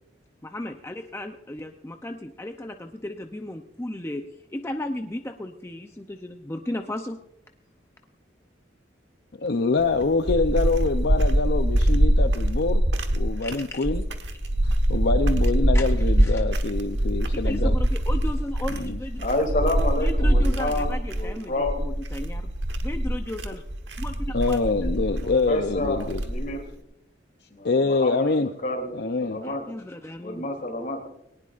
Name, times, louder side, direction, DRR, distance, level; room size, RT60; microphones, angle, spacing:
voice 1, 0.4-4.2 4.5-7.2 13.4-13.8 15.7-15.9 16.2-16.4 17.3-19.3 20.0-22.5 22.8-23.6 24.0-24.6 29.4-30.5, left 1 dB, 15° left, 5 dB, 0.6 m, -35 dB
voice 2, 9.4-12.8 13.1-14.0 14.6-17.7 18.8-19.0 24.3-26.2 27.6-28.5 28.9-29.4, left 3 dB, 60° left, 7 dB, 0.6 m, -25 dB
sound 1, 9.8-26.6, right 1 dB, 65° right, 1.3 m, -23 dB
voice 3, 19.2-21.8 25.2-26.7 27.5-29.7 30.2-31.0, left 1 dB, 45° left, 3 dB, 2.9 m, -29 dB
20.0 x 18.5 x 2.5 m, 0.81 s
head